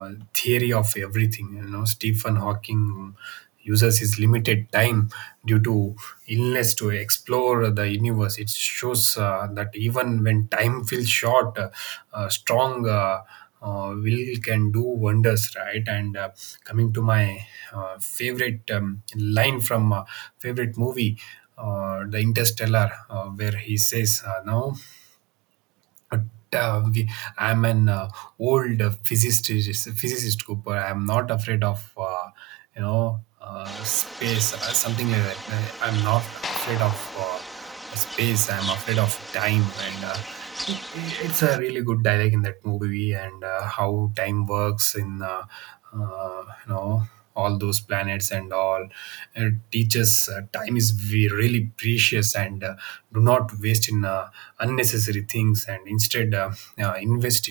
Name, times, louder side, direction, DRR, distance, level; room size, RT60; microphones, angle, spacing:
voice 1, 0.0-25.0 26.1-57.5, right 25 dB, 40° right, 0.5 m, -25 dB
sound 1, 33.6-41.6, right 1 dB, ahead, 4.8 m, -37 dB
sound 2, 36.4-38.8, left 6 dB, 20° left, 1.4 m, -38 dB
figure-of-eight pair, 90°, 0 cm